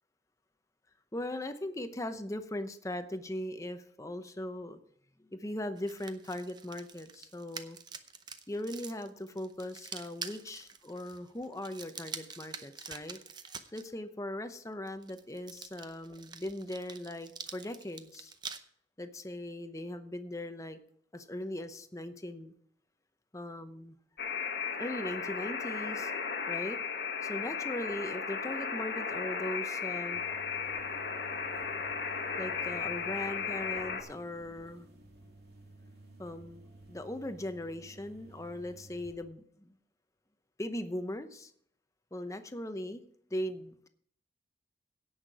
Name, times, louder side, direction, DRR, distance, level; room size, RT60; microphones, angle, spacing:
voice 1, 1.1-4.8 5.2-7.8 8.5-13.2 13.7-18.3 19.0-20.8 21.1-22.5 23.3-24.0 24.8-26.1 26.5-26.8 27.2-30.2 32.4-34.9 36.2-39.7 40.6-41.5 42.1-43.0 43.3-43.9, left 1 dB, 20° left, 9 dB, 0.8 m, -39 dB
sound 1, 5.8-13.8 14.9-18.6, right 5 dB, 25° right, 0.7 m, -46 dB
Alarm, 24.2-34.0, left 5 dB, 70° left, 1.5 m, -35 dB
sound 2, 30.1-39.1, right 2 dB, 65° right, 3.0 m, -54 dB
17.0 x 5.9 x 4.7 m, 0.63 s
head